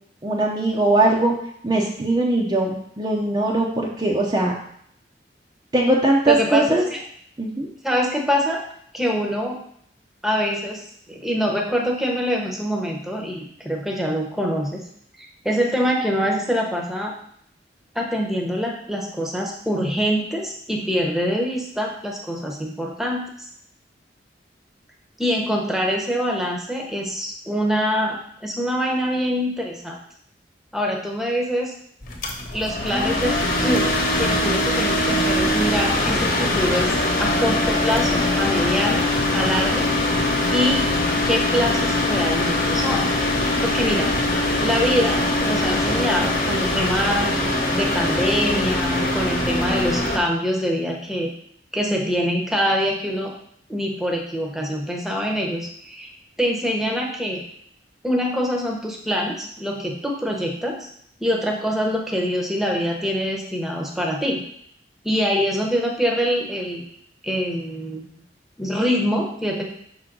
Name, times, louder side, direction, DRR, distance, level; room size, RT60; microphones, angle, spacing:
voice 1, 0.2-1.4 1.6-4.5 5.7-6.8 7.4-7.7, right 2 dB, 25° right, -2 dB, 0.6 m, -20 dB
voice 2, 6.3-7.0 7.8-8.6 8.9-9.6 10.2-14.8 15.2-17.1 17.9-23.5 25.2-30.0 30.7-31.7 32.5-39.1 39.3-39.9 40.2-40.8 41.2-43.1 43.6-44.1 44.6-47.4 47.7-51.3 51.7-53.3 53.7-56.1 56.4-57.4 58.0-60.9 61.2-64.4 65.0-66.8 67.2-68.1 68.6-69.7, equal, ahead, -1 dB, 0.9 m, -24 dB
sound 1, 32.0-50.2, left 1 dB, 50° left, 1.2 m, -22 dB
5.6 x 3.8 x 6.0 m, 0.67 s
head